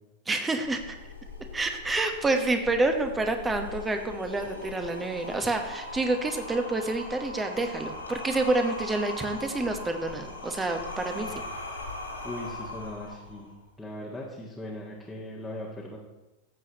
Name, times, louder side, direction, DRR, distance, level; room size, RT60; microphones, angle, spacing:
voice 1, 0.3-1.0 1.5-11.4, right 2 dB, 15° right, 5 dB, 1.2 m, -28 dB
sound 1, 0.6-13.6, left 2 dB, 80° left, 2.7 m, -40 dB
voice 2, 12.2-13.5 13.8-16.0, left 1 dB, 5° left, -6 dB, 1.6 m, -39 dB
15.5 x 7.6 x 3.0 m, 1.1 s
figure-of-eight pair, 90°, 0 cm